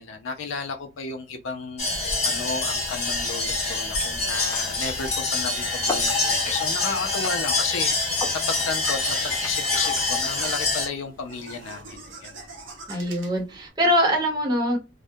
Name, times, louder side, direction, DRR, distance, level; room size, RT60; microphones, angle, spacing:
voice 1, 0.0-12.5, left 4 dB, 80° left, 0.5 m, -33 dB
sound 1, 1.8-10.9, left 3 dB, 35° left, 0.9 m, -26 dB
sound 2, 2.5-11.3, left 3 dB, 15° left, 0.6 m, -41 dB
sound 3, 5.7-13.7, right 3 dB, 75° right, 0.8 m, -42 dB
voice 2, 12.9-14.8, equal, 20° right, 0.8 m, -23 dB
2.3 x 2.1 x 2.6 m
head